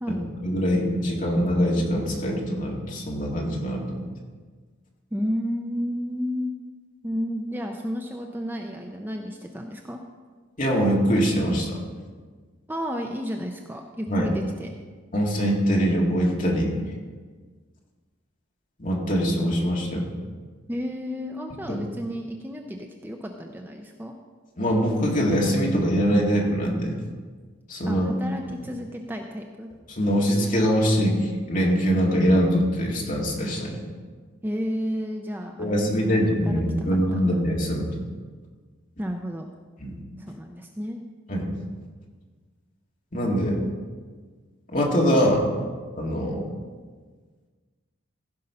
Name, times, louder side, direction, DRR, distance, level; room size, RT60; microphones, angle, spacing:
voice 1, 0.1-4.0 10.6-11.8 14.1-14.3 15.1-16.7 18.8-20.1 21.7-21.8 24.6-27.0 27.7-28.1 28.5-28.6 29.9-33.8 35.6-37.9 39.8-40.0 41.3-41.5 43.1-43.6 44.7-45.5 46.0-46.5, equal, 40° left, -2 dB, 2.0 m, -23 dB
voice 2, 5.1-6.5 7.0-10.0 12.7-14.7 20.7-24.1 27.9-29.7 34.4-36.6 36.9-37.4 39.0-39.5 40.2-41.0, equal, 10° right, 3 dB, 0.5 m, -32 dB
15.5 x 5.4 x 5.5 m, 1.5 s
head